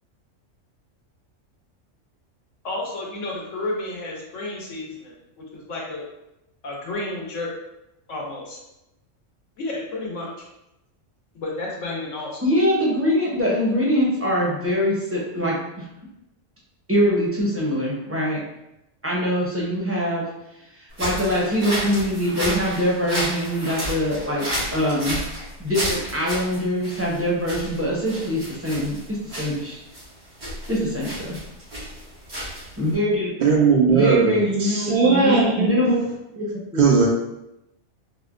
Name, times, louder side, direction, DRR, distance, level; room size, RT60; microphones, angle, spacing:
voice 1, 2.6-6.0 6.6-7.5 8.1-8.6 9.6-10.3 11.3-12.4, left 2 dB, 75° left, -3 dB, 1.1 m, -31 dB
voice 2, 12.4-15.8 16.9-18.4 19.0-20.3 21.0-25.2 25.6-29.8 30.7-31.4 32.8-33.3 33.9-36.0 36.4-36.5 36.7-36.8, equal, 15° right, -5 dB, 0.5 m, -23 dB
sound 1, 20.9-32.9, equal, 90° right, 2.1 m, -32 dB
voice 3, 33.4-36.0 36.8-37.1, right 4 dB, 60° right, -3 dB, 0.5 m, -18 dB
4.8 x 2.1 x 2.4 m, 0.89 s
omnidirectional pair, 1.3 m